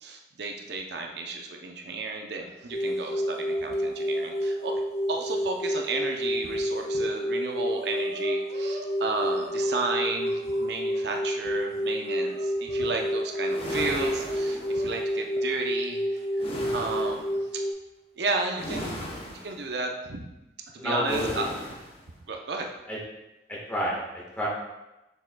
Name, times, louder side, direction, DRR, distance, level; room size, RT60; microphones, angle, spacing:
voice 1, 0.0-4.7 5.1-17.3 17.5-17.6 18.2-20.3 20.7-21.5 22.3-22.7, right 3 dB, 65° right, 2 dB, 0.6 m, -33 dB
Chicken rooster, 2.6-6.1 6.6-6.7 7.0-11.0 11.6-14.9 16.2-16.3 17.3-17.4 18.3-18.7, right 1 dB, 40° right, 0.8 m, -47 dB
sound 1, 2.7-17.7, equal, 50° left, 1.2 m, -29 dB
sound 2, 13.5-15.1 16.4-17.3 18.6-19.6 21.1-22.0, equal, 30° left, 0.8 m, -37 dB
voice 2, 20.8-21.4 22.9-23.0 23.5-24.5, equal, 10° left, -5 dB, 1.3 m, -30 dB
6.9 x 6.2 x 2.2 m, 0.98 s
head